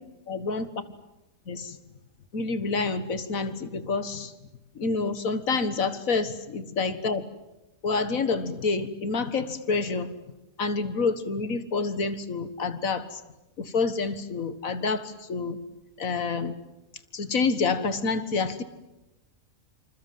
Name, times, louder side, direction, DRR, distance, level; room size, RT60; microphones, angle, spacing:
voice 1, 0.3-0.7 1.5-1.8 2.3-4.3 4.8-7.2 7.8-10.2 10.6-13.2 13.6-15.6 16.0-16.5 17.1-18.6, left 4 dB, 70° left, 11 dB, 2.0 m, -28 dB
27.5 x 27.0 x 7.7 m, 0.98 s
omnidirectional pair, 1.5 m